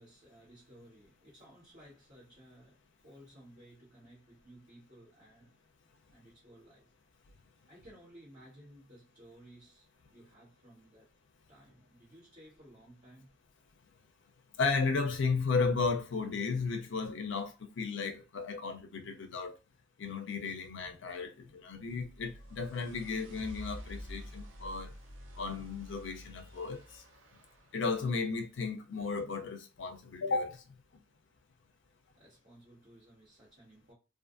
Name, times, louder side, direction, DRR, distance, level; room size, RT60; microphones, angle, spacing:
voice 1, 0.0-5.5 6.1-6.9 7.6-11.1 11.5-13.3 32.2-33.9, right 1 dB, 40° right, 1.5 m, -57 dB
voice 2, 14.6-19.6 20.0-24.9 25.4-27.0 27.7-30.6, left 4 dB, 60° left, 0.5 m, -34 dB
sound 1, 21.8-27.8, equal, 70° right, 0.5 m, -49 dB
2.5 x 2.5 x 2.4 m
head